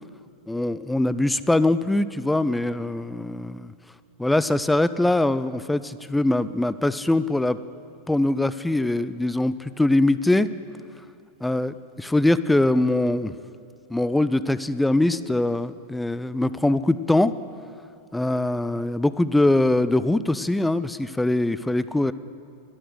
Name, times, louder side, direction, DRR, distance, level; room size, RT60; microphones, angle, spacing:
voice 1, 0.5-3.7 4.2-7.6 8.1-10.5 11.4-13.3 13.9-17.3 18.1-22.1, left 2 dB, 5° left, 15 dB, 0.3 m, -22 dB
12.0 x 11.5 x 6.3 m, 2.4 s
figure-of-eight pair, 90°, 0 cm